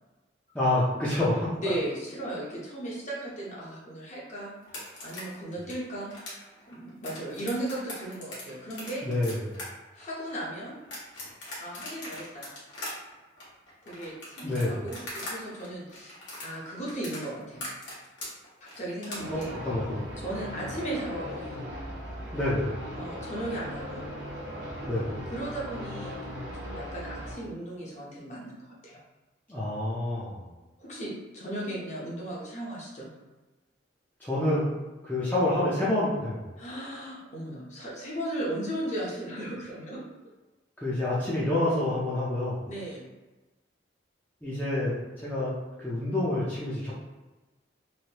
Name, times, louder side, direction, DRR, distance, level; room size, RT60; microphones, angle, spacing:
voice 1, 0.5-1.5 9.0-9.6 14.4-14.8 19.3-20.0 22.3-22.8 24.8-25.3 29.5-30.5 34.2-34.7 35.0-36.4 40.8-42.6 44.4-45.5 45.8-46.9, left 1 dB, 10° left, -9 dB, 0.5 m, -28 dB
voice 2, 1.6-9.1 9.9-10.8 11.6-12.5 13.9-16.2 16.4-17.7 18.8-19.5 20.2-21.7 22.9-24.0 25.3-29.0 30.8-33.1 36.6-40.0 42.7-43.1, right 1 dB, 35° left, -5 dB, 0.8 m, -36 dB
sound 1, 4.6-15.3 15.6-19.4, left 1 dB, 60° left, 1.2 m, -41 dB
sound 2, 19.1-27.3, equal, 60° right, 0.8 m, -38 dB
3.1 x 2.6 x 2.9 m, 1.1 s
head